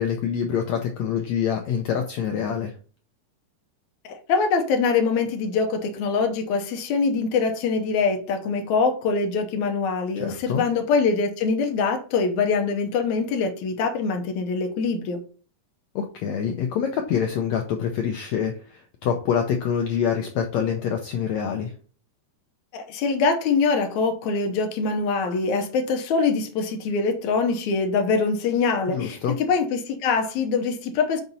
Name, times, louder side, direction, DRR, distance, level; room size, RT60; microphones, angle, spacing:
voice 1, 0.0-2.7 10.2-10.6 15.9-21.7 28.9-29.3, left 7 dB, 90° left, 1.5 m, -26 dB
voice 2, 4.1-15.2 22.7-31.2, left 4 dB, 70° left, 1.9 m, -24 dB
5.9 x 4.1 x 5.3 m
omnidirectional pair, 4.0 m